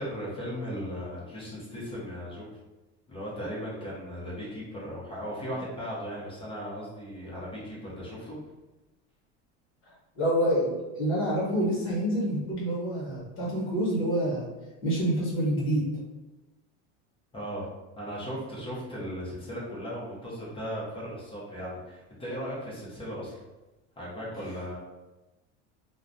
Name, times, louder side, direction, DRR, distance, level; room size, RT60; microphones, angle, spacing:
voice 1, 0.0-2.4 3.1-8.4 17.3-17.7 18.0-23.4 24.0-24.8, equal, 15° left, -7 dB, 0.6 m, -37 dB
voice 2, 10.2-14.5 14.8-15.9, right 1 dB, 35° left, -5 dB, 1.1 m, -27 dB
2.4 x 2.1 x 2.5 m, 1.1 s
cardioid pair, 140°, 35 cm